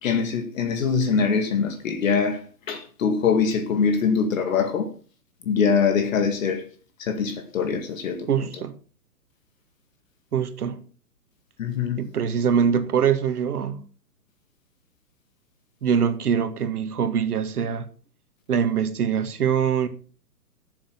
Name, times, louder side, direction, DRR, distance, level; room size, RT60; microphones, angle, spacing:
voice 1, 0.0-4.9 5.5-6.7 7.0-8.3 11.6-12.0, left 6 dB, 55° left, 2.2 m, -23 dB
voice 2, 8.3-8.8 10.3-10.8 12.0-13.9 15.8-17.9 18.5-19.9, right 7 dB, 70° right, 1.9 m, -23 dB
13.0 x 7.3 x 6.0 m
hypercardioid pair, 140°, 47 cm